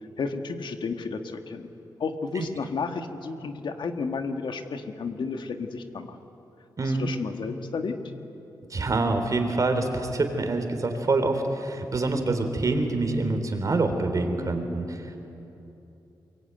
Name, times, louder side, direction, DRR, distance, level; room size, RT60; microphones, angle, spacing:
voice 1, 0.2-1.7 2.0-6.2 6.8-7.9, left 4 dB, 70° left, 6 dB, 1.8 m, -32 dB
voice 2, 6.8-7.1 8.7-15.2, right 2 dB, 45° right, 6 dB, 3.5 m, -26 dB
23.5 x 22.5 x 9.4 m, 2.9 s
wide cardioid pair, 95°, 8 cm